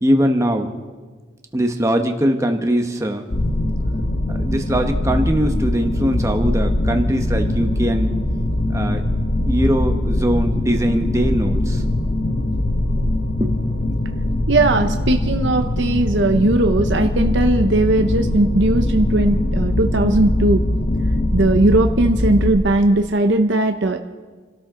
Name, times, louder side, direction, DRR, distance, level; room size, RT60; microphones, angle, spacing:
voice 1, 0.0-0.7 1.5-3.2 4.3-8.1 8.7-11.8 13.4-13.5, equal, 15° right, 4 dB, 1.2 m, -21 dB
sound 1, 3.3-22.5, left 1 dB, 50° left, 1.3 m, -21 dB
voice 2, 14.5-20.6 21.3-24.0, right 2 dB, 65° right, 5 dB, 0.8 m, -18 dB
29.0 x 13.0 x 3.8 m, 1.4 s
head